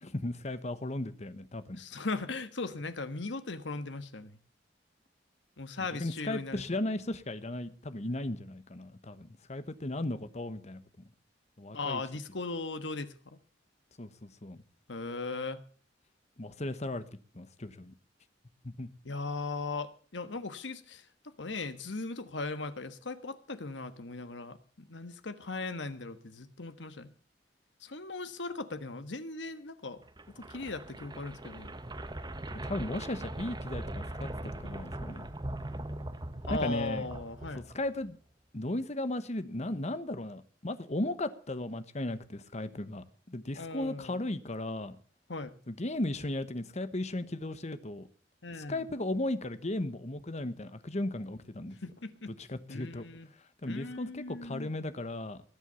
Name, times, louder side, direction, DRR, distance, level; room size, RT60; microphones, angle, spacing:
voice 1, 0.0-1.8 6.0-10.8 11.6-12.0 14.0-14.6 16.4-17.0 17.3-17.9 18.6-18.9 32.6-35.3 36.5-37.1 37.5-38.2 38.5-45.0 45.7-48.1 48.5-51.8 52.3-53.1 53.6-55.4, left 1 dB, 40° left, 1.2 m, -36 dB
voice 2, 1.7-4.4 5.6-6.6 11.7-13.4 14.9-15.6 19.0-27.1 27.8-30.0 30.3-31.8 36.4-37.7 43.6-44.2 45.3-45.6 48.4-48.8 51.8-52.3 52.7-53.3 53.6-54.7, left 3 dB, 80° left, 1.4 m, -38 dB
sound 1, 30.0-38.1, right 1 dB, 25° right, 1.2 m, -40 dB
19.0 x 8.2 x 6.9 m
head